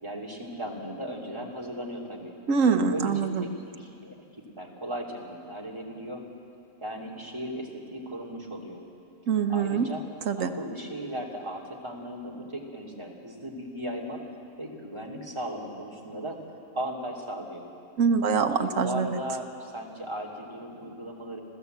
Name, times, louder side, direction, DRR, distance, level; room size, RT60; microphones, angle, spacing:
voice 1, 0.0-2.3 2.9-4.1 4.6-6.2 6.8-8.8 9.5-10.0 10.4-14.2 14.6-16.4 16.7-17.6 18.6-21.4, equal, 15° right, 0 dB, 2.9 m, -37 dB
voice 2, 2.5-3.4 9.3-9.9 10.3-10.5 18.0-19.1, right 6 dB, 55° right, 6 dB, 1.3 m, -24 dB
28.5 x 15.0 x 8.1 m, 2.5 s
omnidirectional pair, 1.7 m